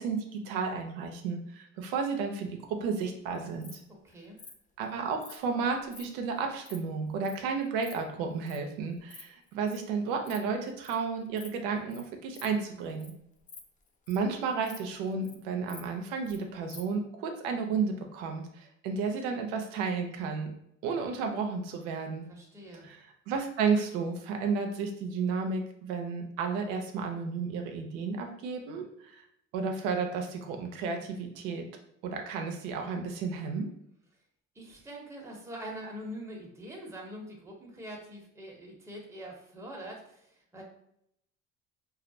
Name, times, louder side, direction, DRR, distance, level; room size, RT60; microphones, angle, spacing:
voice 1, 0.0-3.8 4.8-13.1 14.1-20.5 20.8-22.2 22.8-29.1 29.5-31.7 32.0-33.7, right 5 dB, 90° right, 4 dB, 0.5 m, -32 dB
Insect, 3.3-3.8 4.4-4.5 5.2-5.4 5.9-6.0 6.4-6.8 7.2-7.4 7.6-7.9 8.5-8.6 8.9-9.2 9.5-9.8 10.1-10.4 10.6-11.0 11.4-11.6 11.9-12.0 12.3-12.5 12.9-13.1 13.4-14.3 14.6-14.8 15.1-15.4 15.7-16.4 16.7-16.8, left 5 dB, 25° left, 0.3 m, -48 dB
voice 2, 3.9-4.4 22.3-22.9 34.5-40.6, equal, 10° right, -2 dB, 0.7 m, -44 dB
2.3 x 2.1 x 2.6 m, 0.75 s
supercardioid pair, 80°, 34 cm